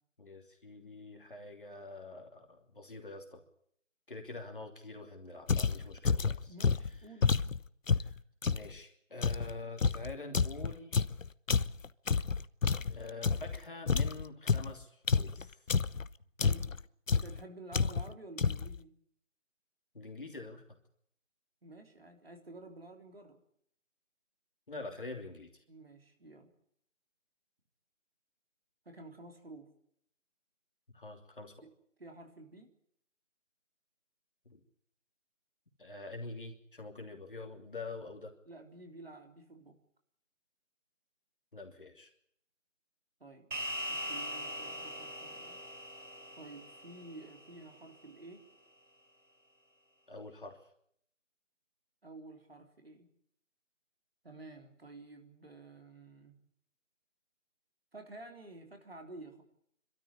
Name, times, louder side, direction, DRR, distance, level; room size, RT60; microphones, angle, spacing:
voice 1, 0.2-3.4 4.1-6.5 8.0-8.2 8.5-11.0 12.9-15.6 19.9-20.6 24.7-25.5 30.9-31.5 34.4-34.6 35.8-38.3 41.5-42.1 50.1-50.6, left 3 dB, 40° left, 4 dB, 3.0 m, -46 dB
sound 1, 5.5-8.7 9.2-13.6 13.9-16.1 16.4-16.8 17.1-17.4 17.7-18.1 18.4-18.8, left 5 dB, 80° left, 0.9 m, -30 dB
voice 2, 6.5-7.4 16.4-16.7 17.1-18.9 21.6-23.4 25.7-26.5 28.9-29.7 31.6-31.7 32.0-32.7 38.5-39.8 43.2-43.5 43.9-45.6 46.4-48.4 52.0-53.1 54.2-56.4 57.9-59.4, right 2 dB, 50° right, 4 dB, 3.6 m, -51 dB
sound 2, 43.5-48.2, equal, 80° right, 5.3 m, -42 dB
25.0 x 13.0 x 9.9 m, 0.67 s
figure-of-eight pair, 175°, 38 cm